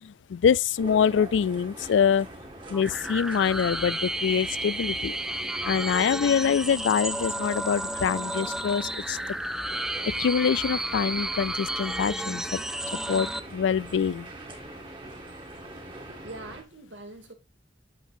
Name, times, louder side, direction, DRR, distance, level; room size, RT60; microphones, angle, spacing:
voice 1, 0.0-2.3 2.7-9.2 10.2-12.6 13.1-14.3, left 7 dB, 85° left, 0.3 m, -25 dB
sound 1, 0.8-16.6, right 1 dB, 25° right, 2.2 m, -44 dB
sound 2, 2.7-13.4, right 1 dB, 5° right, 0.5 m, -32 dB
voice 2, 16.0-17.3, right 2 dB, 90° right, 2.6 m, -43 dB
9.4 x 7.3 x 2.7 m
head